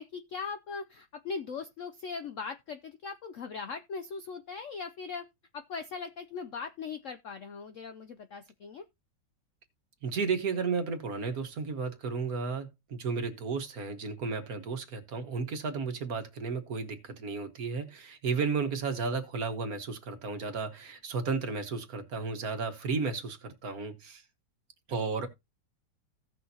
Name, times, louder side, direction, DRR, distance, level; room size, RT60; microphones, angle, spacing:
voice 1, 0.0-5.3 5.5-8.8, left 5 dB, 65° left, 0.7 m, -39 dB
voice 2, 10.0-24.2 24.9-25.3, right 4 dB, 55° right, 1.7 m, -33 dB
16.5 x 6.3 x 2.8 m
omnidirectional pair, 2.0 m